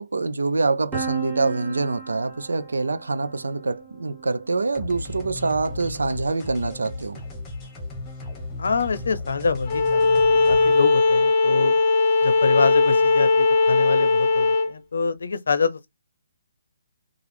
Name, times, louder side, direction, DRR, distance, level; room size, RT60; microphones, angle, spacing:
voice 1, 0.0-7.2, right 3 dB, 85° right, 0.5 m, -25 dB
Piano, 0.9-6.7, right 5 dB, 10° right, 1.2 m, -37 dB
sound 1, 4.7-10.8, left 2 dB, 15° left, 1.1 m, -36 dB
voice 2, 8.6-11.8 12.2-15.9, left 5 dB, 75° left, 0.6 m, -26 dB
Bowed string instrument, 9.7-14.7, left 3 dB, 30° left, 0.7 m, -19 dB
3.3 x 2.3 x 3.4 m
hypercardioid pair, 155°, 0 cm